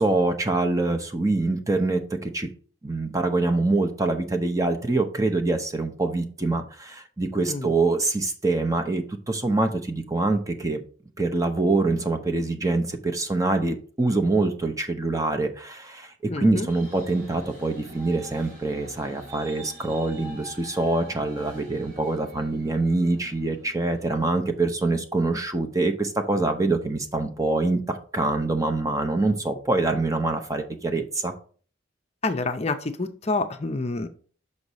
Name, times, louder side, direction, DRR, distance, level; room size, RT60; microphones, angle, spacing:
voice 1, 0.0-2.5 2.8-10.8 11.2-31.3, right 2 dB, 15° right, 6 dB, 0.7 m, -25 dB
voice 2, 16.3-16.7 32.2-34.1, left 3 dB, 30° left, 7 dB, 0.6 m, -28 dB
sound 1, 16.7-24.3, right 1 dB, 45° right, 3.3 m, -46 dB
6.5 x 5.4 x 4.1 m, 0.42 s
head